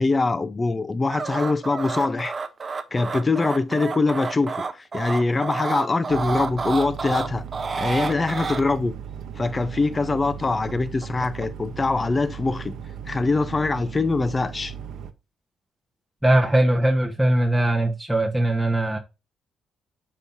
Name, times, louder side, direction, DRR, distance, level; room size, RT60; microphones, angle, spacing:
voice 1, 0.0-2.3 2.9-7.4 7.8-8.9 9.4-12.7 13.1-14.7, left 3 dB, 25° left, 0.6 m, -23 dB
sound 1, 1.1-8.6 10.2-10.7 11.0-11.5, right 4 dB, 35° right, 0.9 m, -29 dB
sound 2, 6.1-15.1, right 8 dB, 75° right, 0.8 m, -37 dB
voice 2, 16.2-19.0, right 1 dB, ahead, 1.1 m, -20 dB
8.1 x 5.5 x 2.7 m
cardioid pair, 90°, 0 cm